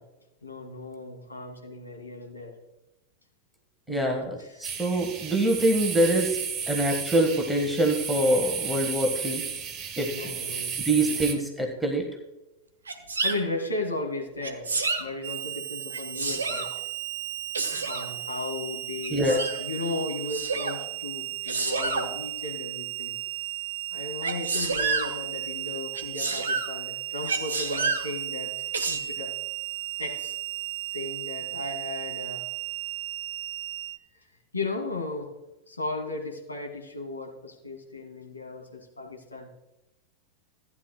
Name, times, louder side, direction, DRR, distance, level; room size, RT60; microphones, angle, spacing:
voice 1, 0.4-2.5 3.9-4.8 10.1-11.2 13.2-14.7 15.0-16.7 17.9-23.2 23.9-28.5 28.9-29.3 30.0-30.4 30.9-32.5 34.5-35.3 35.7-39.5, left 3 dB, 80° left, 1 dB, 2.3 m, -35 dB
voice 2, 3.9-6.4 6.7-9.4 10.0-10.4 10.8-12.1 19.1-19.4, right 1 dB, ahead, 1 dB, 1.4 m, -25 dB
sound 1, 4.6-11.3, right 7 dB, 30° right, 1.4 m, -33 dB
Sneeze, 12.9-13.4 14.4-15.0 15.9-16.7 17.5-18.1 19.0-19.6 20.3-20.8 21.4-22.1 24.2-25.1 25.9-26.7 27.2-28.0 28.7-29.0, right 4 dB, 75° right, 1.2 m, -29 dB
Harmonica, 15.2-34.0, right 14 dB, 55° right, 0.6 m, -35 dB
15.0 x 9.7 x 2.3 m, 0.97 s
figure-of-eight pair, 90°, 0 cm